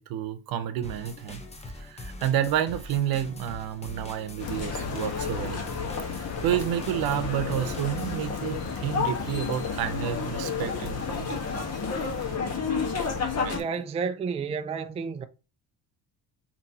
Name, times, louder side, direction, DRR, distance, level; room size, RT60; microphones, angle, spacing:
voice 1, 0.0-1.4 1.8-5.6 6.1-11.4 13.4-13.7, right 10 dB, 75° right, 0.8 m, -30 dB
sound 1, 0.8-8.2, left 2 dB, 15° left, 0.9 m, -42 dB
sound 2, 4.4-12.4, left 6 dB, 75° left, 1.1 m, -48 dB
sound 3, 4.4-13.6, left 5 dB, 45° left, 1.4 m, -31 dB
voice 2, 13.5-15.2, right 5 dB, 20° right, 0.3 m, -31 dB
5.4 x 2.9 x 2.8 m
cardioid pair, 105°, 36 cm